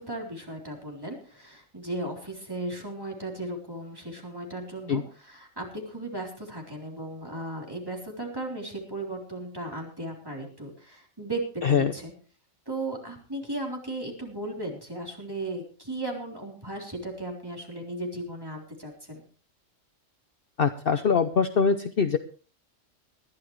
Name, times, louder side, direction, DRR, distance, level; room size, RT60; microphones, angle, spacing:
voice 1, 0.0-12.1 12.7-19.2, right 1 dB, 15° right, -1 dB, 3.8 m, -36 dB
voice 2, 20.6-22.2, left 6 dB, 50° left, 9 dB, 0.9 m, -23 dB
20.0 x 12.5 x 3.2 m, 0.39 s
omnidirectional pair, 1.3 m